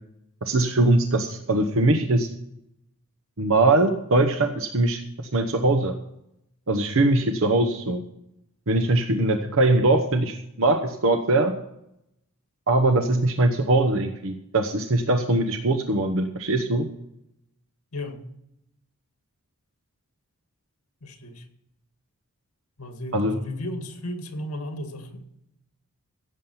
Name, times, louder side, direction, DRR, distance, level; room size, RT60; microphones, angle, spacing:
voice 1, 0.4-2.3 3.4-6.0 6.7-8.0 8.7-11.5 12.7-16.9 23.1-23.4, right 2 dB, 65° right, 6 dB, 1.0 m, -21 dB
voice 2, 17.9-18.3 21.0-21.5 22.8-25.2, left 1 dB, 80° left, 6 dB, 2.0 m, -34 dB
16.0 x 7.4 x 5.8 m, 0.79 s
head